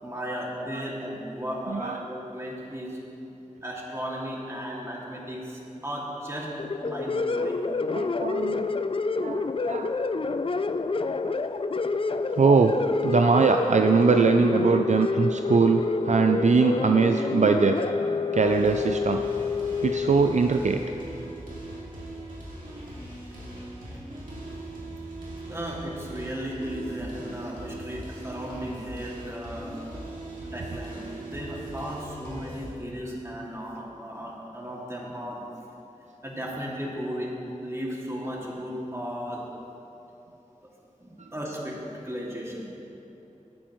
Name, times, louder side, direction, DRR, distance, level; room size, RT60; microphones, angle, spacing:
voice 1, 0.0-3.0 3.6-6.5 6.8-7.6 25.5-30.2 30.4-35.5 36.2-37.3 37.6-39.5 40.6-40.7 41.0-41.8 42.0-42.7, equal, 20° right, -4 dB, 2.4 m, -35 dB
sound 1, 6.6-20.3, left 4 dB, 40° left, 0.4 m, -28 dB
voice 2, 7.9-8.7 9.2-9.9 12.4-12.8 13.0-17.8 18.3-19.2 19.8-20.8, right 5 dB, 60° right, 5 dB, 0.4 m, -22 dB
sound 2, 18.4-32.7, right 1 dB, 80° right, 2.5 m, -40 dB
16.5 x 8.6 x 3.1 m, 3.0 s
wide cardioid pair, 50°, 14 cm